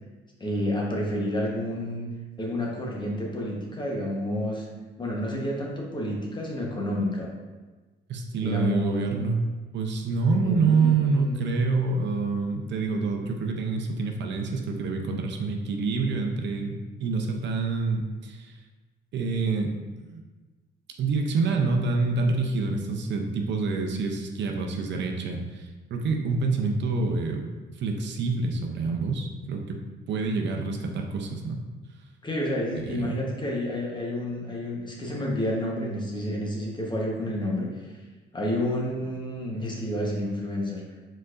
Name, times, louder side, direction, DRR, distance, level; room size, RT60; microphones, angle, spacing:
voice 1, 0.4-2.1 2.4-4.7 5.0-7.3 8.4-9.1 10.3-11.3 32.2-37.7 38.3-40.8, left 1 dB, 25° left, -2 dB, 1.0 m, -29 dB
voice 2, 8.1-9.4 9.7-18.5 19.1-19.7 20.0-20.2 21.0-27.5 27.8-29.8 30.1-31.6 32.8-33.2, right 4 dB, 65° right, 3 dB, 0.6 m, -27 dB
4.4 x 4.1 x 2.5 m, 1.3 s
cardioid pair, 90°, 20 cm